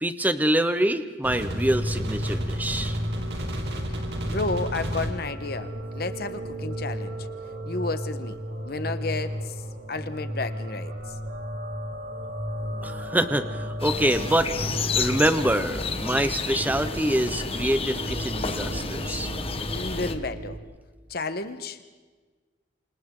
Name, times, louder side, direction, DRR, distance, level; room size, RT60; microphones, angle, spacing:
voice 1, 0.0-3.0 12.8-14.5 15.0-19.3, right 1 dB, 10° right, 9 dB, 1.0 m, -25 dB
sound 1, 1.2-20.6, equal, 65° right, 2.9 m, -33 dB
voice 2, 4.3-7.2 7.7-8.4 8.6-9.5 9.9-10.9 19.7-20.6 21.1-21.8, left 3 dB, 55° left, 10 dB, 1.3 m, -31 dB
sound 2, 13.8-20.1, left 4 dB, 30° left, 1.4 m, -31 dB
28.5 x 27.0 x 3.9 m, 1.4 s
head